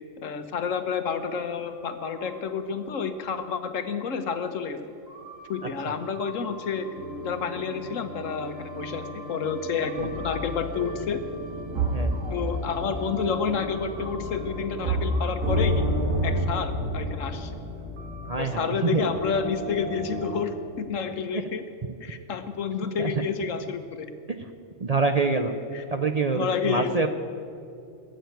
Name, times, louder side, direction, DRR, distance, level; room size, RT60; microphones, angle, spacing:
voice 1, 0.2-4.8 5.5-6.9 7.2-11.2 12.3-15.9 16.2-17.5 18.4-21.6 22.0-24.1 25.7-25.8 26.3-27.1, left 6 dB, 75° left, 9 dB, 1.3 m, -29 dB
sound 1, 1.1-2.7 2.9-3.0 3.8-3.9 5.1-20.4, equal, 80° right, 2.3 m, -32 dB
voice 2, 18.2-19.0 21.3-21.4 23.0-23.1 24.8-25.5 25.9-27.1, right 4 dB, 40° right, 6 dB, 0.6 m, -26 dB
18.5 x 7.8 x 9.2 m, 2.4 s
omnidirectional pair, 1.3 m